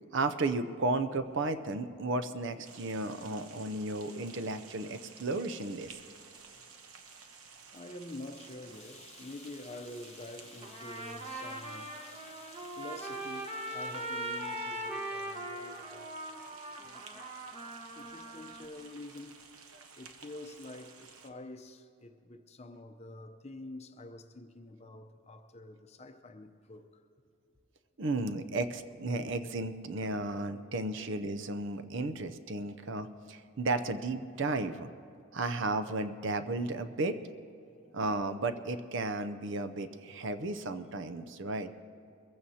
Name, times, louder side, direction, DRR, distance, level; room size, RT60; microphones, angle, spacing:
voice 1, 0.1-6.0 28.0-34.9 35.3-37.2 37.9-41.8, right 2 dB, 55° right, 0.6 m, -34 dB
sound 1, 2.6-21.3, right 5 dB, 80° right, 1.1 m, -54 dB
voice 2, 7.7-16.1 16.8-17.2 18.0-19.5 20.0-27.0 30.7-30.8 31.3-31.4 35.4-35.6 37.6-37.7, left 2 dB, 30° left, 0.7 m, -47 dB
Trumpet, 10.6-18.6, right 1 dB, 30° right, 1.3 m, -40 dB
22.5 x 15.0 x 2.8 m
head